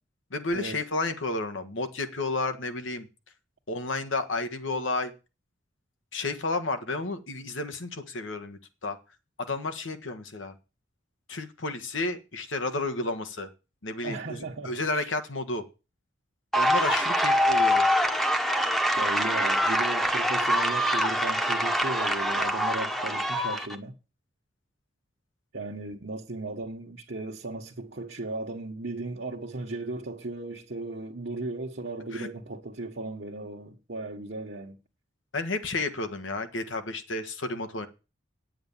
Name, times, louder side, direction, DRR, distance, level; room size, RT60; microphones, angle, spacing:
voice 1, 0.3-3.1 3.7-5.1 6.1-9.0 9.5-10.5 11.3-13.5 13.8-15.6 16.6-17.9 32.1-32.3 35.3-37.9, left 2 dB, 75° left, 1.5 m, -31 dB
voice 2, 14.0-15.1 19.0-23.9 25.5-34.8, right 2 dB, 60° right, 1.3 m, -36 dB
sound 1, 16.5-23.7, equal, ahead, 1.0 m, -24 dB
9.5 x 7.8 x 7.3 m
head